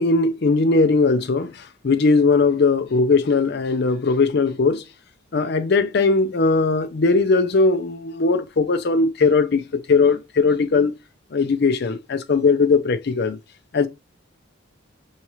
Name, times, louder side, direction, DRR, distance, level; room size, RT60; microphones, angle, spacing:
voice 1, 0.0-1.5 1.8-4.8 5.3-10.9 11.3-13.4 13.7-13.9, left 4 dB, 50° left, 0.5 m, -19 dB
4.7 x 2.8 x 3.0 m
head